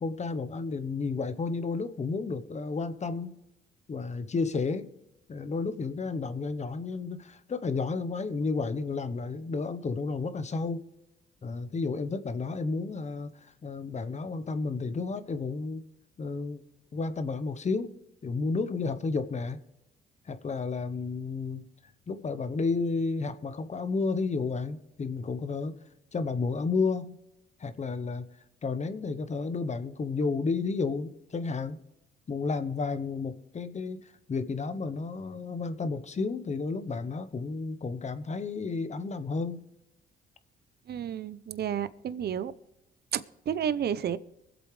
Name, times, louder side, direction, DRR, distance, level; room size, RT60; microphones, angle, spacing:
voice 1, 0.0-3.4 3.9-4.9 5.3-10.8 11.4-15.8 16.2-16.6 16.9-17.9 18.2-19.6 20.3-21.6 22.1-25.7 26.1-27.2 27.6-28.3 28.6-31.8 32.3-39.6, left 4 dB, 35° left, 11 dB, 1.0 m, -32 dB
voice 2, 40.9-42.5 43.1-44.2, right 9 dB, 55° right, 15 dB, 0.7 m, -31 dB
23.5 x 8.1 x 3.3 m, 0.88 s
cardioid pair, 90°, 20 cm